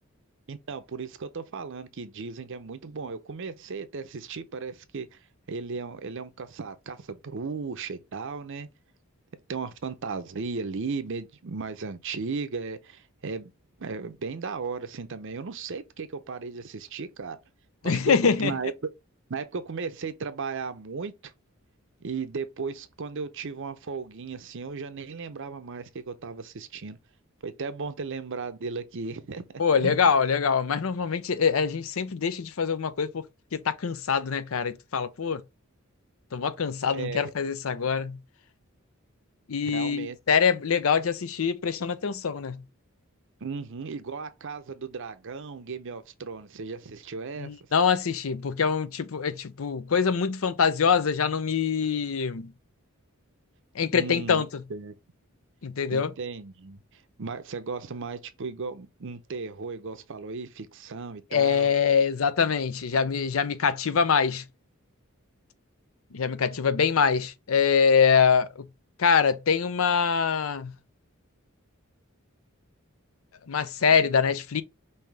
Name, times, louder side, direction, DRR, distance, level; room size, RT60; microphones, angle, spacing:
voice 1, 0.5-5.2 5.5-8.7 9.5-13.5 13.8-17.4 17.8-18.7 19.3-21.3 22.0-27.0 27.4-30.0 36.9-37.3 39.6-40.2 43.4-47.5 53.9-54.4 54.7-54.9 55.9-61.7 73.8-74.1, right 4 dB, 65° right, 0.7 m, -36 dB
voice 2, 17.8-18.5 29.6-33.2 33.5-35.4 36.3-38.2 39.5-42.6 47.4-52.5 53.8-54.5 55.6-56.1 61.3-64.4 66.1-68.6 69.0-70.7 73.5-74.6, left 6 dB, 70° left, 0.6 m, -24 dB
5.5 x 2.7 x 3.4 m
head